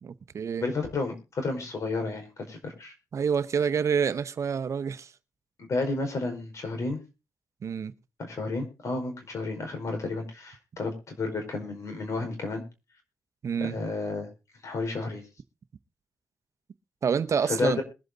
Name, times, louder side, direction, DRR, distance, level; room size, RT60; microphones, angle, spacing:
voice 1, 0.0-0.7 3.1-5.1 7.6-7.9 13.4-13.7 17.0-17.8, right 6 dB, 60° right, 0.8 m, -27 dB
voice 2, 0.6-2.9 5.6-7.0 8.2-12.6 13.6-14.3 14.6-15.2 17.4-17.8, left 3 dB, 65° left, 4.9 m, -31 dB
21.5 x 7.8 x 3.9 m
cardioid pair, 60°, 6 cm